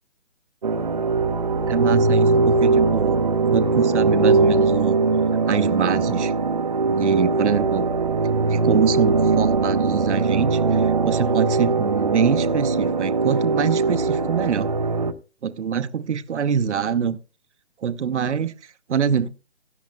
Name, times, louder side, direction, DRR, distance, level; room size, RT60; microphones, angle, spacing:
sound 1, 0.6-15.1, right 4 dB, 35° right, 0.5 m, -20 dB
voice 1, 1.7-3.2 3.5-5.0 5.5-6.3 6.9-7.9 8.2-14.7 15.4-17.2 17.8-19.3, right 7 dB, 70° right, 0.8 m, -24 dB
17.0 x 11.5 x 2.2 m
hypercardioid pair, 160°, 36 cm